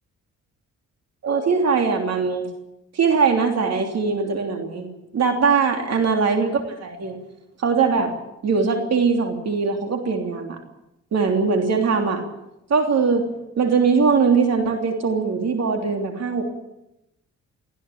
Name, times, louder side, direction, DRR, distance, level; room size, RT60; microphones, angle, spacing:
voice 1, 1.2-2.5 2.9-4.9 5.1-7.2 7.6-8.2 8.4-10.6 11.1-12.2 12.7-16.4, right 5 dB, 60° right, 4 dB, 3.2 m, -21 dB
24.0 x 15.5 x 8.7 m, 0.89 s
cardioid pair, 90°, 30 cm